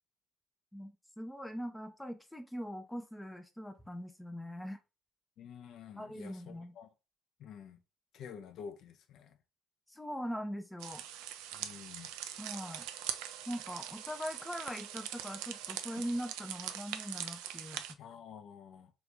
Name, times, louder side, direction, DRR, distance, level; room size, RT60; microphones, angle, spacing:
voice 1, 0.7-4.8 6.0-6.7 9.9-11.0 12.4-12.9 13.5-18.0, equal, 5° left, 0.5 m, -41 dB
voice 2, 5.4-6.9 7.4-7.8 8.1-9.4 11.5-12.1 18.0-18.9, left 7 dB, 55° left, 0.5 m, -49 dB
sound 1, 10.8-17.9, right 11 dB, 65° right, 0.3 m, -42 dB
3.9 x 2.5 x 3.3 m
figure-of-eight pair, 50°, 0 cm